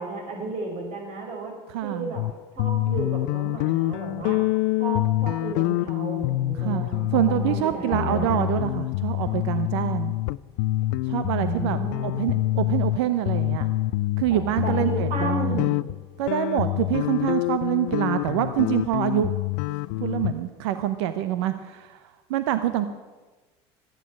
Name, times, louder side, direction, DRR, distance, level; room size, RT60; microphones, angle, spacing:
voice 1, 0.0-1.5 1.8-2.2 2.6-4.4 4.8-8.5 11.4-12.4 14.3-15.8, right 3 dB, 55° right, 1 dB, 5.5 m, -33 dB
voice 2, 1.7-2.1 6.6-6.8 7.1-10.1 11.1-13.7 14.2-15.7 16.2-19.3 20.0-22.0 22.3-22.9, right 12 dB, 80° right, 10 dB, 0.9 m, -26 dB
sound 1, 2.2-2.3 2.6-13.0 13.3-20.3, left 18 dB, 70° left, 0.4 m, -26 dB
14.0 x 9.3 x 8.6 m, 1.3 s
supercardioid pair, 90°, 14 cm